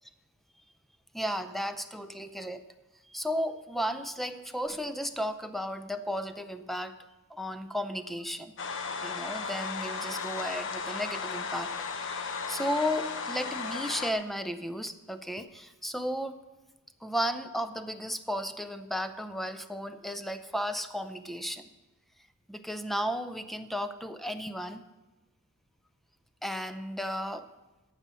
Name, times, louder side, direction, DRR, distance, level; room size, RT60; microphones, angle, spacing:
voice 1, 1.1-2.6 3.1-7.0 7.3-8.5 9.0-11.7 12.5-16.4 17.0-21.7 22.5-24.8 26.4-27.5, equal, ahead, 10 dB, 0.5 m, -34 dB
sound 1, 8.6-14.1, left 5 dB, 60° left, 0.8 m, -35 dB
14.0 x 5.6 x 7.2 m, 1.1 s
head